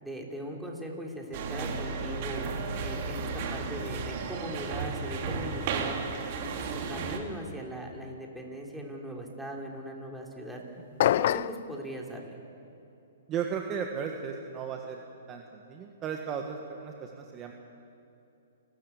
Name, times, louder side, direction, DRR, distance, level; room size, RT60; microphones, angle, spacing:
voice 1, 0.0-2.4 2.8-6.0 6.3-10.6 11.0-12.4, right 1 dB, 5° right, -1 dB, 3.4 m, -40 dB
sound 1, 1.3-7.2, right 4 dB, 45° right, 2.9 m, -34 dB
sound 2, 11.0-11.6, left 12 dB, 55° left, 0.4 m, -24 dB
voice 2, 13.3-15.0 15.3-17.5, right 7 dB, 25° right, 3 dB, 1.5 m, -35 dB
29.5 x 13.0 x 8.4 m, 2.8 s
hypercardioid pair, 140°, 0 cm